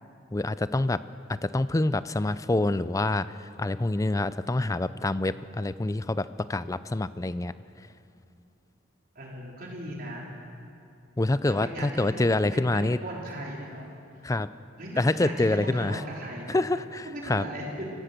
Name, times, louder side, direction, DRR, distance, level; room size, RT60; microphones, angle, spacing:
voice 1, 0.3-1.0 1.3-3.3 3.6-7.5 11.2-13.0 14.2-14.5 15.0-16.0 16.5-17.5, left 2 dB, 15° left, 15 dB, 0.4 m, -26 dB
voice 2, 9.1-10.2 11.5-13.9 14.8-16.6 17.0-17.9, right 1 dB, 50° right, -2 dB, 4.2 m, -38 dB
24.5 x 16.0 x 6.7 m, 2.6 s
head